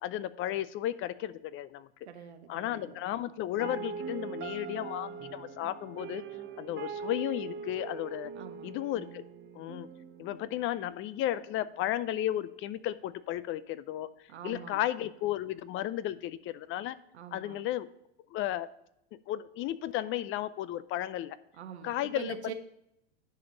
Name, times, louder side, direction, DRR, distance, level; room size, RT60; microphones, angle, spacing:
voice 1, 0.0-1.9 2.5-6.2 6.6-8.3 8.6-9.2 9.5-9.9 10.2-14.1 14.4-17.0 17.3-17.9 18.3-18.7 19.3-21.4 21.8-22.3, left 13 dB, 40° left, 0.5 m, -34 dB
voice 2, 2.1-3.0 8.3-8.8 14.3-14.8 17.1-17.7 21.5-22.5, right 7 dB, 85° right, 1.0 m, -44 dB
sound 1, 3.6-11.6, right 5 dB, 35° right, 1.2 m, -42 dB
10.5 x 5.2 x 3.9 m
hypercardioid pair, 95°, 32 cm